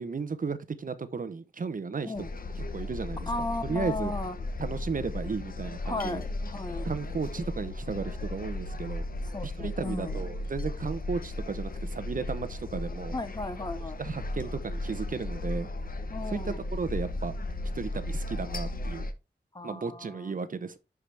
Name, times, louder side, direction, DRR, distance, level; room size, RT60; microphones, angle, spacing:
voice 1, 0.0-2.3 2.7-3.3 3.6-4.1 4.6-6.2 6.8-9.1 9.4-13.1 14.0-15.7 16.3-17.3 17.7-19.1 19.6-20.8, right 5 dB, 50° right, 0.8 m, -34 dB
sound 1, 2.2-19.1, left 2 dB, 55° left, 1.0 m, -35 dB
voice 2, 3.3-4.4 5.8-6.9 9.3-10.2 13.1-14.0 16.1-16.6 19.5-20.3, left 2 dB, 25° left, 0.7 m, -35 dB
11.5 x 4.8 x 3.4 m
wide cardioid pair, 125°, 18 cm